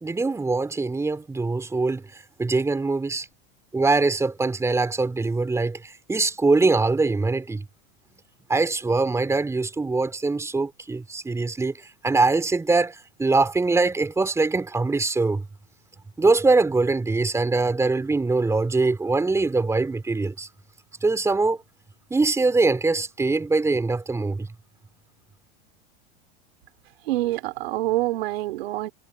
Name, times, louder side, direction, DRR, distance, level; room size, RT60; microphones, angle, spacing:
voice 1, 0.0-2.0 2.4-3.3 3.7-7.6 8.5-11.8 12.0-15.4 16.2-20.5 21.0-21.6 22.1-24.5, right 3 dB, 10° right, 3.1 m, -23 dB
voice 2, 27.1-28.9, right 16 dB, 75° right, 3.6 m, -26 dB
supercardioid pair, 130°, 31 cm